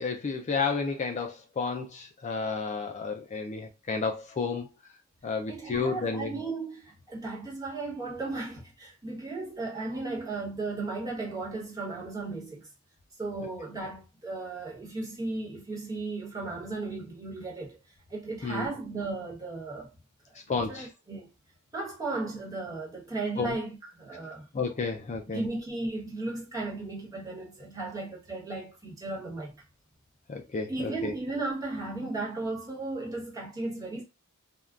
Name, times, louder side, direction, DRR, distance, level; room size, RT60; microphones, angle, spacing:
voice 1, 0.0-4.7 5.2-6.3 18.4-18.7 20.5-20.9 23.4-23.5 24.5-25.4 30.3-31.1, left 4 dB, 35° left, 0.3 m, -31 dB
voice 2, 5.5-12.7 13.2-17.8 18.1-19.9 20.7-21.3 21.7-24.5 25.3-29.6 30.7-34.0, right 3 dB, 15° right, 1.1 m, -35 dB
3.6 x 2.2 x 2.3 m
head